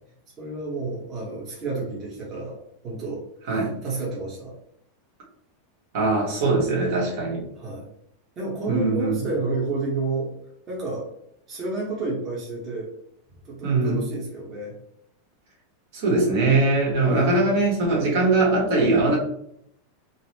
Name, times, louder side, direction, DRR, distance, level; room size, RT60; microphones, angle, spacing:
voice 1, 0.4-2.6 2.8-3.2 3.5-4.5 7.5-7.9 8.4-10.3 10.7-11.1 11.5-12.9 13.4-14.7 17.1-17.3, right 3 dB, 30° right, -4 dB, 1.1 m, -30 dB
voice 2, 3.5-3.8 5.9-7.4 8.6-9.2 13.6-14.0 15.9-19.2, right 2 dB, 65° right, -2 dB, 1.4 m, -21 dB
3.9 x 2.1 x 2.8 m, 0.71 s
supercardioid pair, 135°, 0 cm